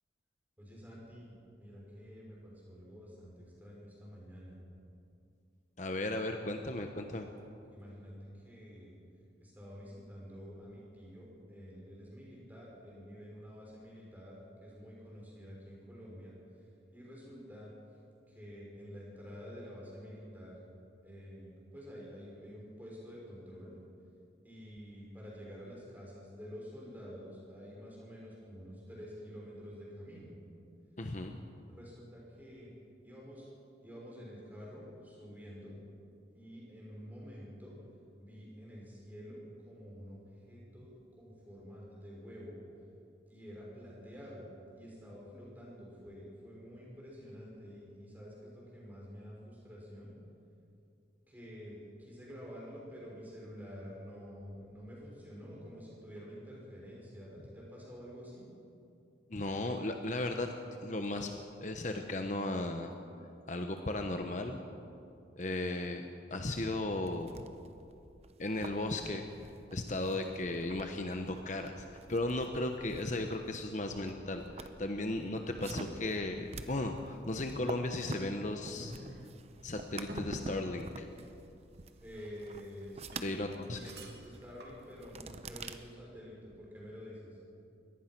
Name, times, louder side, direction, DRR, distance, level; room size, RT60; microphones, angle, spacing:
voice 1, 0.6-4.6 7.7-9.0 9.4-16.3 16.9-17.7 18.3-20.6 21.0-23.7 24.4-30.3 31.7-32.7 33.0-33.5 33.8-35.7 36.3-37.7 38.2-39.4 39.7-42.6 43.3-50.1 51.3-58.4 82.0-87.4, equal, 10° right, -4 dB, 6.0 m, -49 dB
voice 2, 5.8-7.3 31.0-31.4 59.3-60.5 60.8-61.3 61.6-62.9 63.5-64.6 65.4-67.4 68.4-69.2 69.7-78.9 79.6-81.1 83.2-83.8, left 2 dB, 40° left, 5 dB, 1.0 m, -36 dB
sound 1, 66.9-85.7, right 3 dB, 35° right, 0.9 m, -49 dB
sound 2, 76.0-85.7, right 1 dB, 65° right, 2.8 m, -52 dB
23.5 x 18.0 x 6.1 m, 2.6 s
head